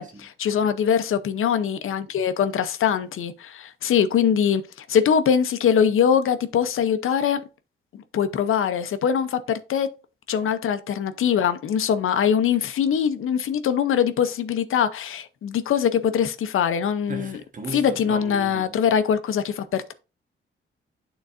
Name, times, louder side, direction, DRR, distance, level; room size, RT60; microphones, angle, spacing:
voice 1, 0.0-4.6 4.9-7.4 7.9-9.9 10.3-17.4 17.7-19.9, left 8 dB, 80° left, 0.7 m, -22 dB
voice 2, 17.1-18.8, right 3 dB, 40° right, 1.3 m, -36 dB
11.5 x 3.9 x 2.6 m
wide cardioid pair, 155°, 21 cm